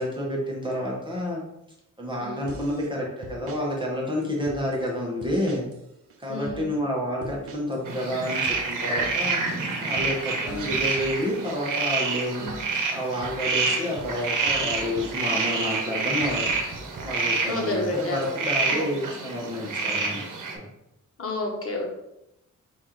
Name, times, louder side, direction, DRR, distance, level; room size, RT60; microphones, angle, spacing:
voice 1, 0.0-1.4 2.0-5.6 6.2-9.4 9.8-12.4 12.9-16.5 17.0-20.2 20.5-20.7, equal, 15° right, -4 dB, 0.8 m, -29 dB
voice 2, 2.2-2.5 6.3-6.7 10.4-10.8 12.4-12.6 17.5-18.3 18.6-18.9 21.2-21.9, left 2 dB, 45° left, -1 dB, 1.0 m, -30 dB
sound 1, 2.5-2.9 3.2-3.6 4.2-4.8 5.2-5.8 6.1-6.6 7.2-7.8 8.1-11.8 12.2-12.6 13.2-15.8 16.2-18.4, right 2 dB, 45° right, 0.5 m, -43 dB
sound 2, 7.9-20.5, right 4 dB, 75° right, 0.9 m, -28 dB
4.2 x 2.5 x 4.4 m, 0.86 s
wide cardioid pair, 165°, 31 cm